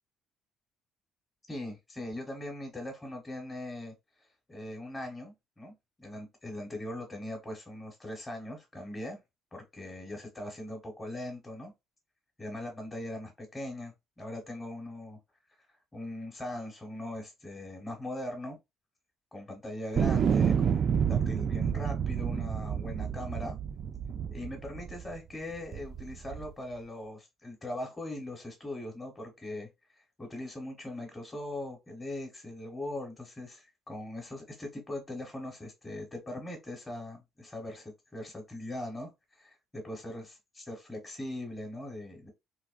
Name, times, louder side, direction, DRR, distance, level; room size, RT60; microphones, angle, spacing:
voice 1, 1.5-3.9 4.5-5.7 6.0-9.2 9.5-11.7 12.4-15.2 15.9-18.6 19.3-23.6 24.3-29.7 30.2-39.1 39.4-42.3, left 1 dB, 15° left, 1.0 m, -40 dB
sound 1, 20.0-25.2 25.7-26.5, right 7 dB, 45° right, 0.3 m, -29 dB
3.4 x 2.6 x 2.4 m
cardioid pair, 120°, 0 cm